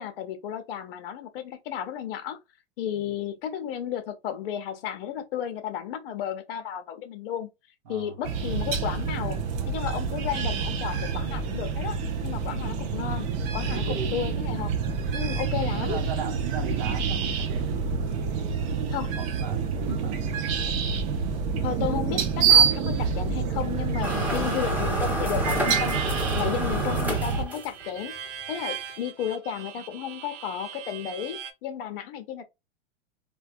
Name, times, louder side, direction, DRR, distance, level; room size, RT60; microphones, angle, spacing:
voice 1, 0.0-2.4 2.8-7.5 7.9-9.4 9.7-12.0 12.2-13.3 13.5-14.7 15.1-16.0 18.9-19.1 19.9-20.0 21.6-26.0 26.3-28.1 28.5-32.4, left 9 dB, 55° left, 0.8 m, -33 dB
voice 2, 7.9-8.2 13.7-14.3 15.7-18.7 19.0-20.4 23.4-23.7 26.7-27.0, right 6 dB, 50° right, 0.9 m, -39 dB
sound 1, 8.2-27.4, right 6 dB, 20° right, 0.3 m, -27 dB
sound 2, 24.0-28.0, equal, 5° right, 1.0 m, -30 dB
Harmonica, 25.4-31.5, right 8 dB, 85° right, 0.8 m, -37 dB
3.3 x 2.2 x 2.4 m
hypercardioid pair, 130°, 35 cm